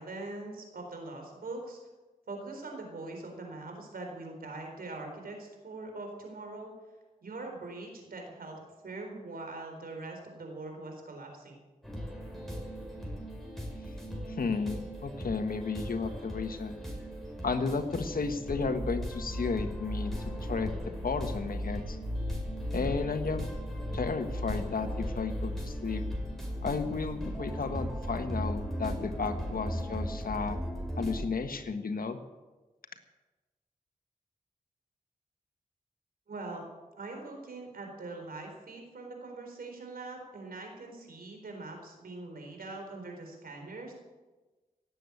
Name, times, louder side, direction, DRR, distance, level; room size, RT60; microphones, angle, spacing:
voice 1, 0.0-1.8 2.3-6.7 7.2-8.6 8.8-11.6 36.3-36.6 37.0-43.9, right 2 dB, 80° right, 3 dB, 4.1 m, -42 dB
sound 1, 11.8-31.2, equal, ahead, 5.4 m, -37 dB
voice 2, 14.3-16.7 17.4-22.0 22.7-23.5 23.9-26.0 26.6-30.6 31.0-32.2, left 4 dB, 75° left, 8 dB, 1.5 m, -33 dB
17.0 x 8.3 x 8.3 m, 1.2 s
cardioid pair, 50°, 15 cm